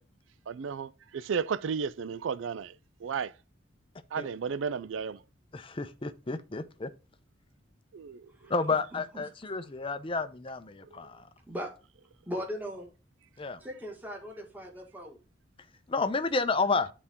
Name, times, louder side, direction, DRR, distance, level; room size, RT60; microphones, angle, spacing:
voice 1, 0.5-2.7 3.0-3.3 4.1-5.2 7.9-8.3, right 6 dB, 80° right, 0.4 m, -33 dB
voice 2, 5.5-6.9 8.5-11.3 13.4-13.6 15.9-16.9, left 4 dB, 30° left, 0.6 m, -31 dB
voice 3, 8.4-9.2 11.5-11.7 12.3-12.9 13.6-15.2, equal, 10° right, 1.8 m, -39 dB
9.8 x 4.2 x 3.5 m
head